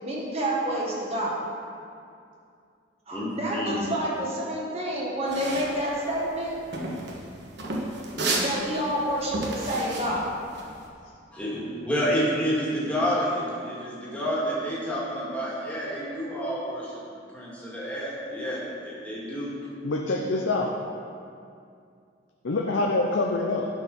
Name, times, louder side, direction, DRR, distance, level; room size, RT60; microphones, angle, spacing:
voice 1, 0.0-1.4 3.1-6.5 8.4-10.3, right 1 dB, 35° right, -5 dB, 1.8 m, -28 dB
voice 2, 3.1-3.8 11.3-11.6 11.8-16.9 17.3-19.5, equal, 5° left, -7 dB, 2.0 m, -29 dB
sound 1, 5.3-10.8, right 2 dB, 60° right, 1.2 m, -32 dB
voice 3, 19.8-20.7 22.4-23.7, left 2 dB, 85° left, 1 dB, 0.6 m, -25 dB
11.5 x 4.7 x 5.4 m, 2.4 s
head